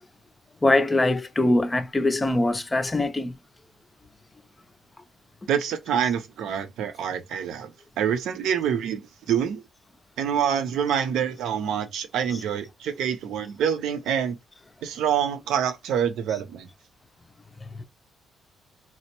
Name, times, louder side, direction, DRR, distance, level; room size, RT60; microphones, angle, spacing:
voice 1, 0.6-3.3 17.8-17.9, left 2 dB, 15° left, 0.4 m, -22 dB
voice 2, 5.5-7.7 8.0-9.0 9.3-9.6 10.2-14.4 14.8-16.7, right 8 dB, 80° right, 0.6 m, -26 dB
4.2 x 2.1 x 2.9 m
cardioid pair, 150°, 0 cm